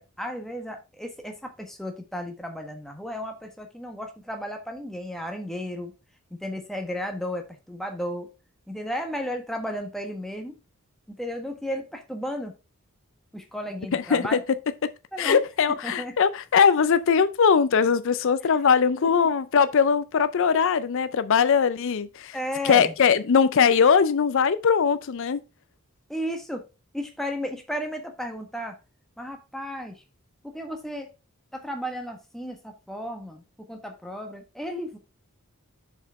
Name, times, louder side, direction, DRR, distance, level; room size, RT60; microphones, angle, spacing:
voice 1, 0.0-5.9 6.3-8.3 8.7-10.6 11.1-12.5 13.3-14.4 15.1-15.4 15.8-16.2 19.0-19.3 22.3-22.9 26.1-26.6 26.9-28.8 29.2-30.0 30.4-31.1 31.5-35.0, equal, ahead, 1.4 m, -34 dB
voice 2, 13.9-14.4 14.8-14.9 15.2-22.4 22.6-25.4, left 6 dB, 60° left, 0.5 m, -21 dB
7.1 x 5.0 x 4.7 m
head